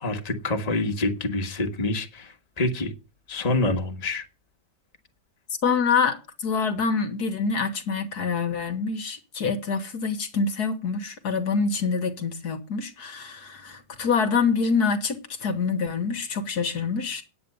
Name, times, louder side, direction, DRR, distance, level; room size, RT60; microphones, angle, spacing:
voice 1, 0.0-2.9 3.3-4.2, left 2 dB, 25° left, 1.5 m, -27 dB
voice 2, 5.6-17.2, left 5 dB, 65° left, 1.7 m, -26 dB
9.5 x 8.5 x 6.7 m
omnidirectional pair, 1.9 m